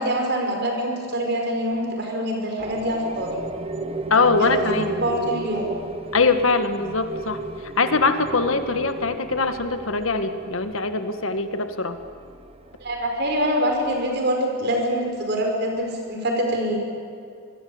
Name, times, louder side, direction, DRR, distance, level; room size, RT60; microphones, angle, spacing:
voice 1, 0.0-3.3 4.4-5.7 12.8-16.8, equal, 55° right, 2 dB, 5.6 m, -25 dB
sound 1, 2.6-14.2, right 2 dB, 30° right, 1.1 m, -34 dB
voice 2, 4.1-4.9 6.1-7.4 7.8-12.0, left 3 dB, 85° left, 8 dB, 1.7 m, -22 dB
25.0 x 20.5 x 8.8 m, 2.4 s
head